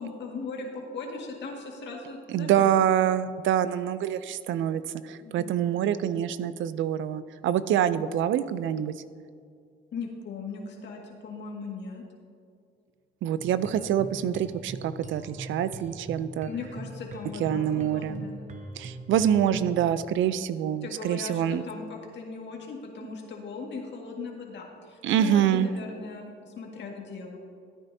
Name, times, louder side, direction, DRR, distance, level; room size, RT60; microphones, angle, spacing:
voice 1, 0.0-2.9 5.2-5.5 9.9-12.0 16.5-18.4 20.8-27.4, left 4 dB, 65° left, 0 dB, 1.9 m, -38 dB
voice 2, 2.3-8.9 13.2-16.5 17.4-18.3 18.8-21.6 25.0-25.7, right 10 dB, 75° right, 14 dB, 0.5 m, -26 dB
sound 1, 13.4-19.8, right 2 dB, 40° right, 0.9 m, -42 dB
14.5 x 9.0 x 2.7 m, 2.2 s
cardioid pair, 90°, 20 cm